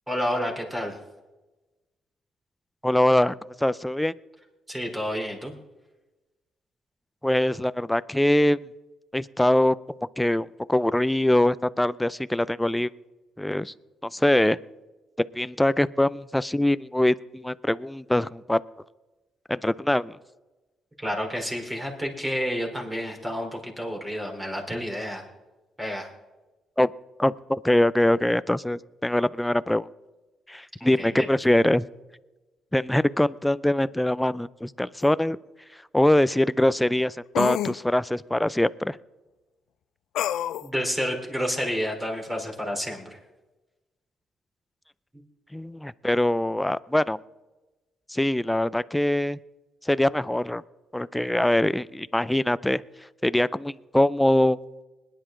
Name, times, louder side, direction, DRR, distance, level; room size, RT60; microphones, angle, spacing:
voice 1, 0.1-1.0 4.7-5.5 21.0-25.2 25.8-26.1 30.8-31.3 40.6-43.2, equal, 10° right, 2 dB, 3.7 m, -30 dB
voice 2, 2.8-3.3 3.6-4.1 7.2-8.7 9.1-9.8 10.2-12.9 13.4-13.7 14.1-14.6 15.2-18.6 19.5-20.2 26.8-26.9 27.2-29.9 30.5-31.9 32.7-35.4 35.9-39.0 45.5-47.2 48.1-49.4 49.9-50.6 50.9-52.8 53.2-54.6, left 1 dB, 5° left, 17 dB, 0.4 m, -23 dB
sound 1, 35.0-35.1 37.4-37.8 40.2-40.7, left 12 dB, 80° left, 0.3 m, -27 dB
21.0 x 10.5 x 3.8 m, 1.1 s
cardioid pair, 90°, 0 cm